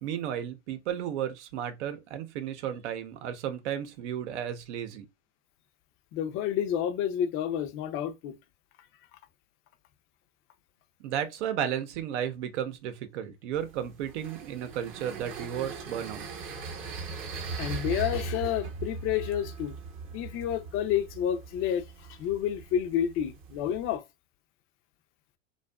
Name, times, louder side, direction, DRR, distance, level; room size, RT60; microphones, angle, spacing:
voice 1, 0.0-5.1 11.0-16.2, right 9 dB, 70° right, 0.8 m, -33 dB
voice 2, 6.1-8.4 17.6-19.7 20.1-24.0, left 10 dB, 35° left, 0.5 m, -30 dB
sound 1, 13.5-24.0, right 4 dB, 35° right, 0.8 m, -39 dB
2.6 x 2.4 x 2.2 m
supercardioid pair, 120°, 36 cm